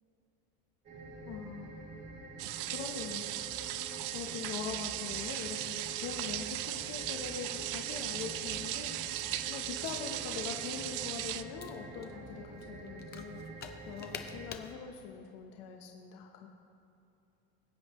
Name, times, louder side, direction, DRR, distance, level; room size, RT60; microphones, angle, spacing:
sound 1, 0.9-14.5, right 2 dB, 35° right, 1.9 m, -47 dB
voice 1, 1.2-1.8 2.7-9.0 9.5-13.4 13.9-16.5, left 7 dB, 70° left, 2 dB, 1.0 m, -43 dB
sound 2, 2.4-11.4, right 14 dB, 80° right, 0.5 m, -38 dB
sound 3, 8.9-14.7, left 7 dB, 35° left, 0.7 m, -51 dB
21.0 x 8.1 x 3.1 m, 2.7 s
cardioid pair, 140°, 29 cm